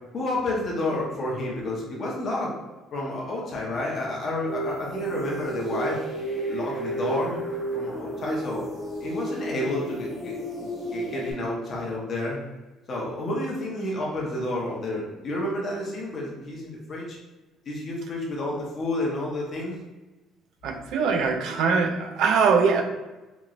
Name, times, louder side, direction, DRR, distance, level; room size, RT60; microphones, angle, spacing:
voice 1, 0.1-2.5 2.9-6.0 6.5-7.4 7.7-8.6 9.0-12.4 12.9-17.2 17.7-19.7, left 1 dB, 35° left, -3 dB, 0.7 m, -30 dB
sound 1, 4.5-11.3, right 1 dB, ahead, 0.8 m, -32 dB
voice 2, 20.6-22.8, right 5 dB, 60° right, 5 dB, 0.4 m, -22 dB
2.9 x 2.9 x 2.5 m, 1.1 s
cardioid pair, 160°, 0 cm